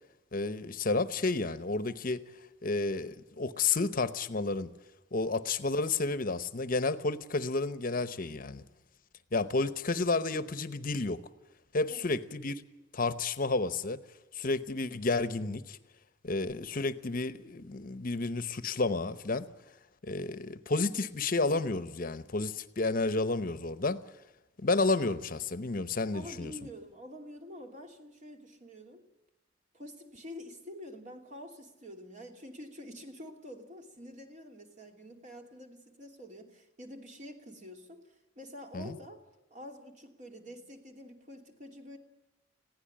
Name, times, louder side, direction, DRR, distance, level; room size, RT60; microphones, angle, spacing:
voice 1, 0.3-2.2 2.6-4.7 5.1-8.6 9.3-11.2 11.7-12.6 12.9-14.0 14.3-15.8 16.2-19.5 20.0-24.0 24.6-26.5 38.7-39.0, left 3 dB, 50° left, 0.9 m, -31 dB
voice 2, 26.1-29.1 29.7-39.2 39.5-42.0, equal, 40° right, 2.8 m, -47 dB
20.5 x 16.0 x 8.6 m
head